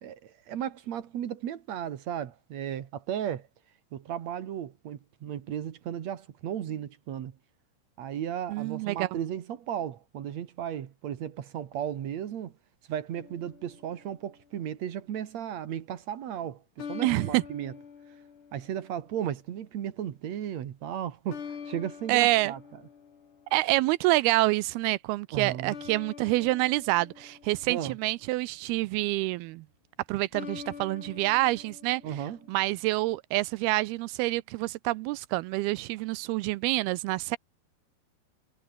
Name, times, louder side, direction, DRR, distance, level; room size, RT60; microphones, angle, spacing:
voice 1, 0.0-3.5 3.9-7.4 8.0-12.5 12.9-17.7 18.5-22.6 25.3-25.8 27.7-28.0 32.0-32.4, right 10 dB, 55° right, 2.1 m, -35 dB
voice 2, 8.5-9.1 17.0-17.4 22.1-22.5 23.5-29.6 30.1-32.0 32.5-37.4, right 19 dB, 80° right, 2.4 m, -27 dB
sound 1, 13.2-14.5 16.8-19.3 21.3-23.9 25.7-28.2 30.3-32.6, left 7 dB, 75° left, 6.3 m, -45 dB
omnidirectional pair, 4.8 m